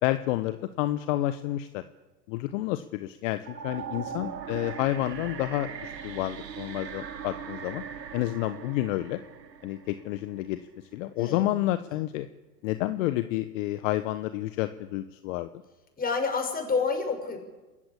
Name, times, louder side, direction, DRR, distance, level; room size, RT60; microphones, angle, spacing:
voice 1, 0.0-1.8 2.3-7.8 8.1-9.2 9.6-10.6 10.9-12.3 12.6-15.5, left 15 dB, 50° left, 11 dB, 1.1 m, -29 dB
sound 1, 3.4-10.5, right 7 dB, 85° right, 1.6 m, -40 dB
voice 2, 4.1-4.5 11.2-11.5 16.0-17.4, left 4 dB, 20° left, 5 dB, 6.2 m, -29 dB
28.0 x 15.0 x 8.8 m, 1.2 s
hypercardioid pair, 95°, 48 cm